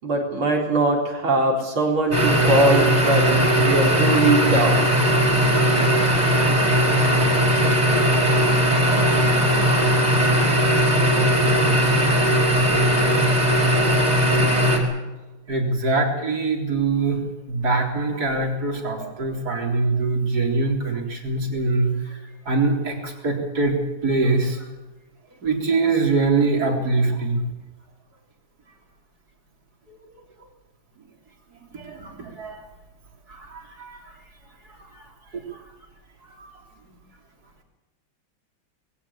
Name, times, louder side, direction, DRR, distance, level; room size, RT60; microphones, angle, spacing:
voice 1, 0.0-4.9, right 2 dB, 80° right, -1 dB, 4.9 m, -21 dB
sound 1, 2.1-14.8, equal, 20° right, 5.0 m, -18 dB
voice 2, 15.5-17.2 17.5-22.2 22.5-23.8 24.0-24.7 25.4-27.4 29.9-30.0 31.7-32.7 33.3-34.1 35.0-35.1 35.3-35.4 36.3-36.5, right 3 dB, 50° right, 2 dB, 4.2 m, -23 dB
21.0 x 17.0 x 8.7 m, 1.1 s
omnidirectional pair, 2.2 m